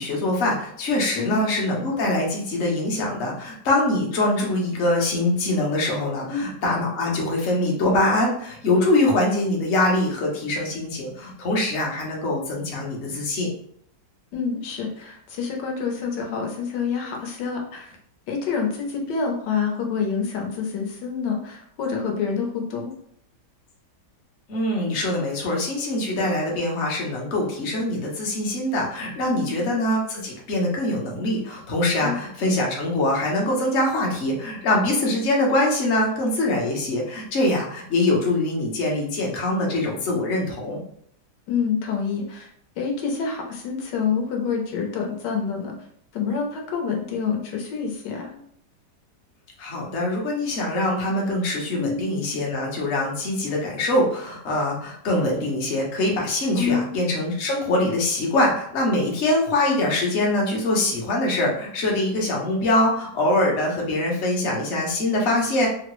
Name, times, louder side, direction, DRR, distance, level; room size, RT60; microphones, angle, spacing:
voice 1, 0.0-13.5 24.5-40.8 49.6-65.7, left 1 dB, 50° left, -2 dB, 0.8 m, -23 dB
voice 2, 14.3-17.9 18.3-22.9 29.3-29.6 32.0-32.2 41.5-42.5 42.8-45.7 46.1-48.4 51.7-52.0 56.5-57.0, left 6 dB, 75° left, 1 dB, 1.3 m, -27 dB
3.7 x 2.0 x 3.0 m, 0.66 s
omnidirectional pair, 1.9 m